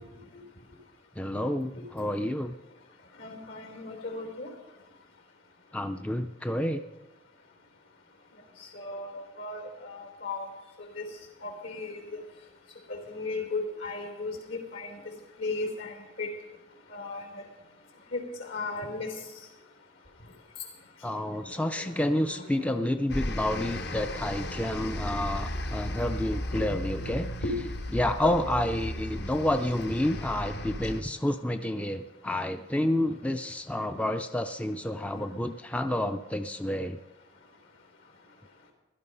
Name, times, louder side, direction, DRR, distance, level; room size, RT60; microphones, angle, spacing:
voice 1, 1.2-2.5 5.7-6.8 21.0-27.3 27.9-37.0, left 1 dB, 5° left, 8 dB, 0.4 m, -29 dB
voice 2, 3.2-4.5 8.6-10.5 11.0-11.1 11.4-12.0 12.9-15.0 15.4-16.3 16.9-17.4 18.1-19.2 21.6-22.7 26.5-27.6 28.2-28.3, left 3 dB, 75° left, 4 dB, 3.7 m, -36 dB
sound 1, 23.1-31.0, left 1 dB, 55° left, 1.0 m, -35 dB
16.5 x 12.0 x 5.4 m, 1.1 s
head